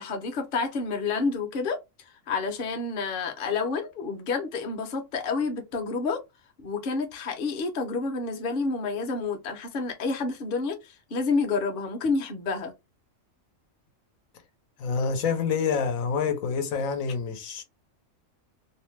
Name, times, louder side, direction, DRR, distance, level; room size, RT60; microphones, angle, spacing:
voice 1, 0.0-1.8 2.3-6.2 6.6-12.7, left 4 dB, 50° left, 0.7 m, -29 dB
voice 2, 14.8-17.6, left 5 dB, 90° left, 1.1 m, -27 dB
2.7 x 2.1 x 3.1 m
omnidirectional pair, 1.4 m